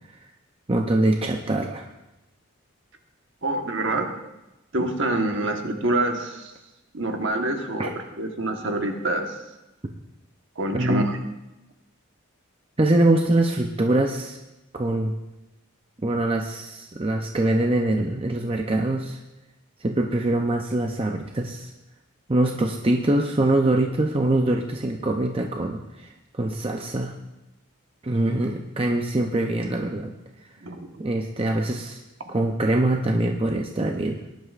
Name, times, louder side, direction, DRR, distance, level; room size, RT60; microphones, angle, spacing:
voice 1, 0.7-1.9 7.8-7.9 10.7-11.1 12.8-14.4 14.7-15.1 16.0-19.2 19.8-21.7 22.3-27.1 28.0-30.1 30.4-30.5 31.0-32.0 32.3-34.2, right 1 dB, 25° right, 2 dB, 0.6 m, -23 dB
voice 2, 3.4-4.1 4.7-6.5 6.9-7.9 8.2-9.3 10.6-11.2 30.6-31.1, right 2 dB, 60° right, 4 dB, 1.3 m, -26 dB
19.0 x 11.0 x 2.5 m, 0.96 s
head